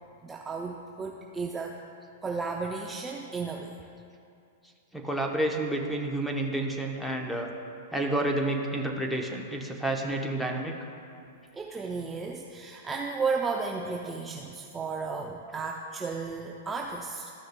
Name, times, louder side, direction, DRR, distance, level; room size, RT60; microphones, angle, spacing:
voice 1, 0.2-1.8 2.2-3.8 11.5-17.3, right 4 dB, 15° right, 0 dB, 0.5 m, -33 dB
voice 2, 4.9-7.5 7.9-10.7, right 1 dB, 5° left, 1 dB, 0.9 m, -29 dB
13.0 x 6.4 x 2.2 m, 2.5 s
hypercardioid pair, 125°, 0 cm